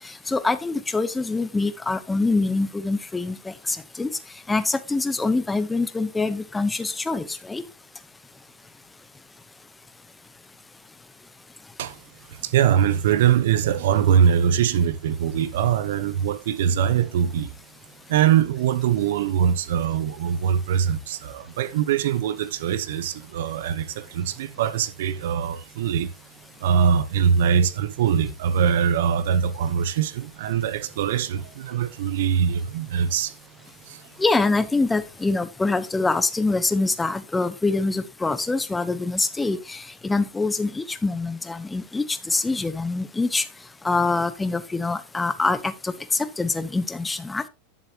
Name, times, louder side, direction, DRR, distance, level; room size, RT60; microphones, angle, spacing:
voice 1, 0.3-4.1 4.5-7.6 34.2-43.4 43.8-45.9 46.4-47.5, left 3 dB, 10° left, 1.0 m, -25 dB
voice 2, 12.3-17.5 18.1-26.1 26.6-33.4 33.8-34.1, right 8 dB, 75° right, 1.0 m, -22 dB
10.5 x 7.4 x 3.0 m
supercardioid pair, 125°, 0 cm